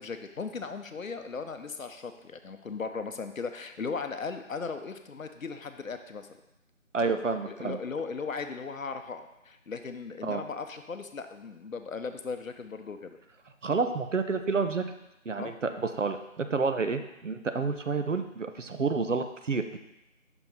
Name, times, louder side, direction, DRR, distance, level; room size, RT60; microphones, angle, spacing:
voice 1, 0.0-6.3 7.0-13.2 15.4-15.6, left 5 dB, 75° left, 8 dB, 0.7 m, -37 dB
voice 2, 6.9-7.8 10.2-10.4 13.6-14.8 15.3-19.8, right 4 dB, 65° right, 8 dB, 0.6 m, -29 dB
5.8 x 4.2 x 3.9 m, 0.91 s
figure-of-eight pair, 170°, 41 cm